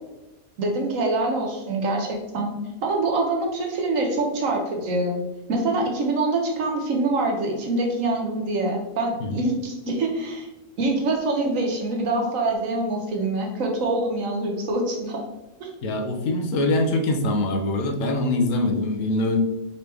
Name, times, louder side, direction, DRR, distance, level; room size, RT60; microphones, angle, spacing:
voice 1, 0.6-2.5 2.8-5.1 5.5-10.5 10.8-15.2 15.6-15.7, right 2 dB, 90° right, 1 dB, 1.3 m, -25 dB
voice 2, 15.8-19.4, left 2 dB, 80° left, 3 dB, 1.1 m, -23 dB
4.2 x 3.1 x 3.3 m, 0.98 s
omnidirectional pair, 1.3 m